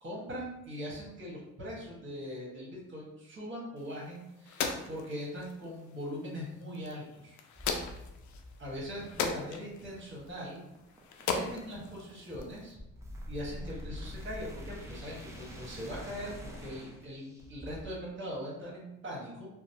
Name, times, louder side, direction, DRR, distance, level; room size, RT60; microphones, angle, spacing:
voice 1, 0.0-7.4 8.6-10.6 11.3-12.8 13.3-16.3 16.6-19.5, equal, 40° right, -4 dB, 1.3 m, -41 dB
sound 1, 3.8-12.7, left 5 dB, 70° left, 0.5 m, -39 dB
sound 2, 7.5-17.8, equal, 10° right, 0.6 m, -46 dB
2.8 x 2.1 x 2.7 m, 0.88 s
cardioid pair, 90°, 30 cm